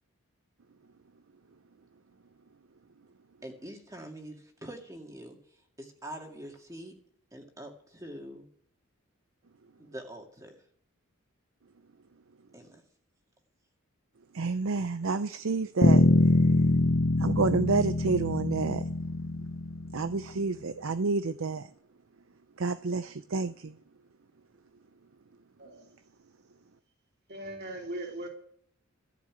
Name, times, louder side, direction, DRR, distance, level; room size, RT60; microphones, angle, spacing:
voice 1, 3.4-5.4 5.8-6.9 7.3-8.5 9.8-10.5 12.5-12.8, right 1 dB, 15° right, 2.3 m, -44 dB
voice 2, 14.3-16.0 17.2-18.8 19.9-21.6 22.6-23.5, right 4 dB, 65° right, 0.5 m, -29 dB
Bass guitar, 15.8-20.2, left 2 dB, 65° left, 1.0 m, -24 dB
voice 3, 27.3-28.3, right 1 dB, 45° right, 3.0 m, -39 dB
14.5 x 7.4 x 8.9 m
head